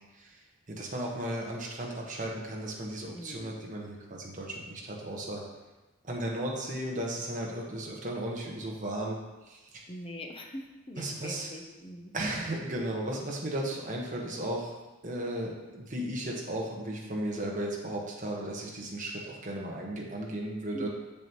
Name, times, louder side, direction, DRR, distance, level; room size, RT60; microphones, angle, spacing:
voice 1, 0.1-5.4 6.0-9.2 9.4-9.8 11.0-11.5 12.1-14.7 15.0-20.9, right 1 dB, 40° right, -2 dB, 1.2 m, -35 dB
voice 2, 3.1-3.7 9.9-12.1 20.7-20.9, left 1 dB, 25° left, 2 dB, 0.7 m, -43 dB
7.0 x 7.0 x 3.0 m, 1.1 s
head